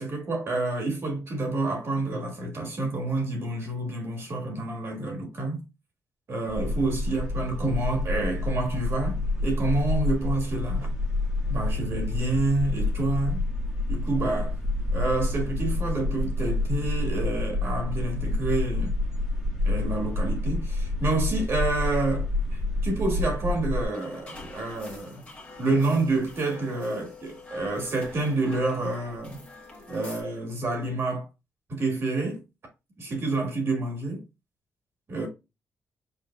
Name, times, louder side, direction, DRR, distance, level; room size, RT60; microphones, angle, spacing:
voice 1, 0.0-5.6 6.3-10.9 11.5-13.4 13.9-14.6 14.9-19.0 19.7-25.2 25.6-29.4 29.9-31.3 31.7-32.4 33.0-34.2 35.1-35.3, right 2 dB, 45° right, 1.7 m, -28 dB
sound 1, 6.5-23.8, left 2 dB, 10° right, 1.4 m, -28 dB
sound 2, 23.9-30.2, left 2 dB, 20° left, 1.4 m, -45 dB
5.5 x 3.9 x 2.2 m
wide cardioid pair, 155°, 6 cm